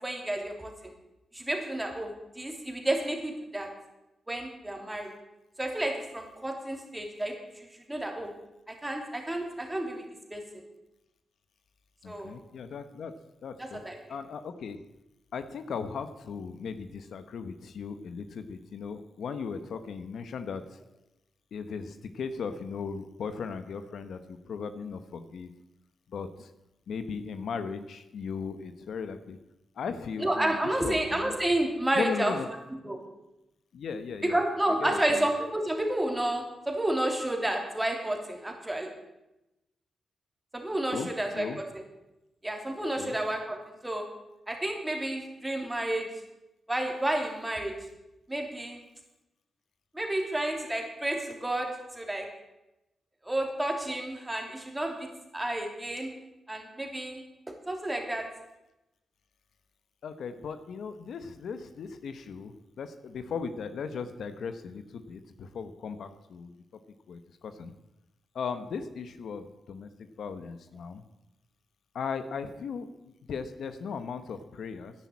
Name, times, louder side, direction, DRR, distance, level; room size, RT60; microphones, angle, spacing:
voice 1, 0.0-0.9 1.3-3.7 4.3-5.1 5.6-8.3 8.7-10.0 10.3-10.4 12.1-12.3 13.6-14.0 30.2-32.3 32.8-33.0 34.2-38.9 40.5-41.5 42.4-43.6 43.8-44.1 44.5-46.1 46.7-47.7 48.3-48.8 49.9-52.3 53.2-55.1 55.3-56.1 56.5-57.2 57.7-58.2, right 1 dB, 10° right, 2 dB, 3.0 m, -30 dB
voice 2, 12.0-13.1 13.4-13.8 14.1-14.8 15.3-20.8 21.5-25.5 26.1-26.5 26.9-29.4 29.8-31.4 31.9-32.5 33.7-34.4 34.8-35.3 40.9-41.6 43.0-43.2 60.0-66.5 67.1-67.7 68.3-71.0 71.9-74.9, left 5 dB, 70° left, 10 dB, 1.0 m, -37 dB
11.0 x 10.0 x 8.4 m, 0.95 s
cardioid pair, 110°, 0 cm